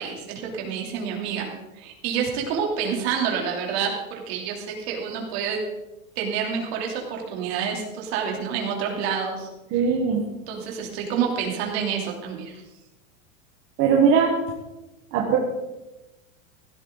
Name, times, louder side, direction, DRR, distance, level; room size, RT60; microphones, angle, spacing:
voice 1, 0.0-1.5 1.7-3.9 4.3-5.6 6.2-9.8 10.5-12.6, right 7 dB, 45° right, 0 dB, 3.1 m, -28 dB
voice 2, 9.7-10.3 13.8-14.3 15.1-15.4, right 6 dB, 30° right, -1 dB, 1.3 m, -19 dB
16.0 x 12.5 x 3.9 m, 1.0 s
supercardioid pair, 175°, 42 cm